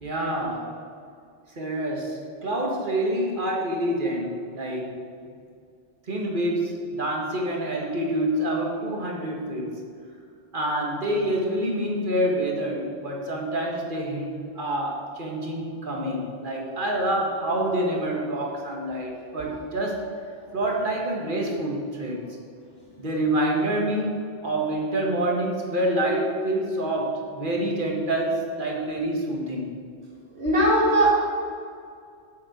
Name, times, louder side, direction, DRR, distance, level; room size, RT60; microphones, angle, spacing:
voice 1, 0.0-0.7 1.5-5.0 6.1-9.8 10.5-20.1 20.5-22.2 23.0-29.7, right 1 dB, 45° right, -1 dB, 1.9 m, -27 dB
voice 2, 30.4-31.1, right 1 dB, 60° right, -7 dB, 2.2 m, -21 dB
7.9 x 7.2 x 8.0 m, 2.3 s
omnidirectional pair, 1.2 m